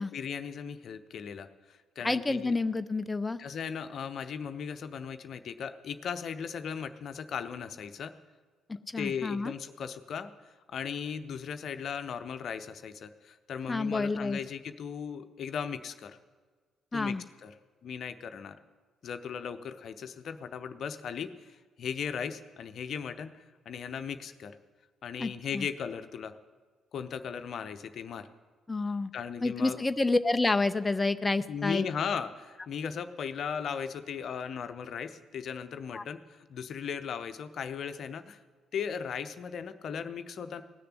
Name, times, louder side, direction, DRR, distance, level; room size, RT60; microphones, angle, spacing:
voice 1, 0.1-2.5 3.4-8.1 9.0-10.3 10.7-16.2 16.9-17.2 17.4-17.5 17.8-18.6 19.0-21.5 21.8-24.6 25.0-26.3 26.9-28.3 29.1-29.8 31.5-38.4 38.7-40.6, left 7 dB, 55° left, 10 dB, 0.8 m, -37 dB
voice 2, 2.0-3.4 8.7-9.5 13.7-14.4 16.9-17.2 25.2-25.7 28.7-29.1 29.4-31.8 35.9-36.0, left 3 dB, 20° left, 12 dB, 0.5 m, -29 dB
17.5 x 6.8 x 9.6 m, 1.5 s
figure-of-eight pair, 45°, 0 cm